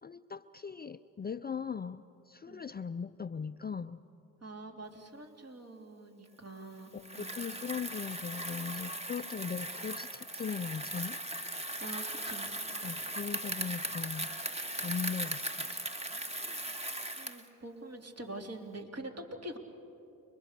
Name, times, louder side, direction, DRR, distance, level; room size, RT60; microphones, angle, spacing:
voice 1, 0.0-4.0 6.9-11.2 11.6-11.8 12.8-14.3 14.8-15.8, left 6 dB, 25° left, 12 dB, 0.5 m, -39 dB
voice 2, 4.4-7.3 11.8-12.5 16.7-19.6, right 2 dB, 40° right, 2 dB, 3.4 m, -45 dB
Bicycle, 7.0-17.5, right 1 dB, 15° right, 1.9 m, -38 dB
29.5 x 22.5 x 6.7 m, 2.7 s
supercardioid pair, 65°, 38 cm